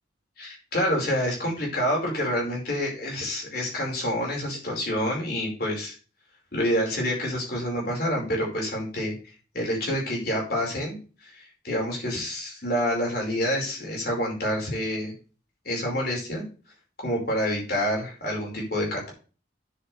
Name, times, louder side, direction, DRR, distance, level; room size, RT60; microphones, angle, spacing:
voice 1, 0.4-5.9 6.5-9.1 9.5-11.0 11.2-15.1 15.6-16.4 17.0-19.1, equal, 55° left, -1 dB, 4.9 m, -27 dB
9.8 x 7.8 x 3.3 m, 0.35 s
head